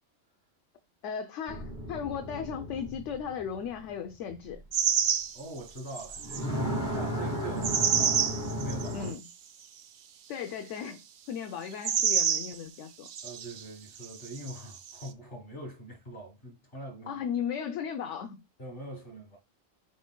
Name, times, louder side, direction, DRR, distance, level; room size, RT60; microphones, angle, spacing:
voice 1, 1.0-4.6 8.9-9.2 10.3-11.0 11.3-13.1 17.1-18.4, left 7 dB, 70° left, 0.9 m, -36 dB
sound 1, 1.5-4.6 6.1-9.1, equal, 20° left, 0.8 m, -34 dB
sound 2, 4.7-5.4 5.8-6.4 7.6-9.1 11.7-12.6 13.1-13.6 14.0-15.1, right 7 dB, 80° right, 0.4 m, -28 dB
voice 2, 5.3-8.3 8.6-9.1 13.2-17.2 18.6-19.4, right 1 dB, 45° left, 1.9 m, -43 dB
5.2 x 4.4 x 2.2 m
omnidirectional pair, 1.4 m